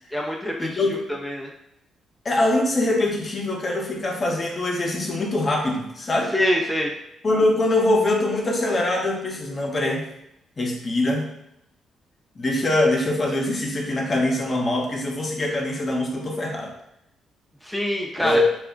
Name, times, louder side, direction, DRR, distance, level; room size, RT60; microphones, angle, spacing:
voice 1, 0.1-1.5 6.3-6.9 17.6-18.4, equal, ahead, -1 dB, 0.5 m, -25 dB
voice 2, 0.6-1.0 2.2-6.3 7.2-10.0 10.6-11.3 12.4-16.7 18.2-18.5, left 2 dB, 40° left, 0 dB, 0.7 m, -23 dB
2.4 x 2.1 x 3.7 m, 0.84 s
hypercardioid pair, 50°, 0 cm